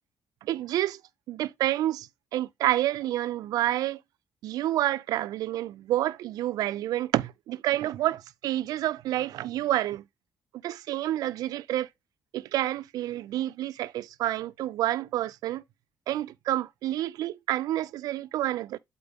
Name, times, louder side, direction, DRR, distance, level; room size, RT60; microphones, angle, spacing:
voice 1, 0.4-1.0 1.3-4.0 4.4-10.0 10.6-11.9 12.3-15.6 16.1-18.8, right 14 dB, 85° right, 0.4 m, -29 dB
8.7 x 4.3 x 3.5 m
cardioid pair, 170°, 6 cm